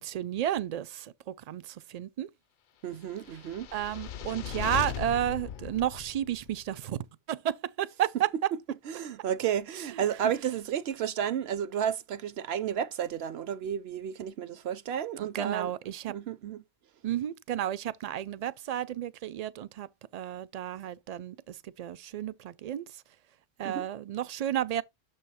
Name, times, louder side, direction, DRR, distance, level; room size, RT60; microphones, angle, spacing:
voice 1, 0.0-2.3 3.7-7.0 7.3-8.3 9.9-10.0 15.2-16.1 17.0-19.9 20.1-23.0 23.6-24.8, right 11 dB, 55° right, 0.4 m, -32 dB
voice 2, 2.8-3.7 8.5-8.6 8.9-15.7 16.1-16.6 23.6-23.9, right 9 dB, 75° right, 0.9 m, -32 dB
sound 1, 3.2-6.6, left 8 dB, 60° left, 0.6 m, -38 dB
6.8 x 3.1 x 5.4 m
omnidirectional pair, 1.1 m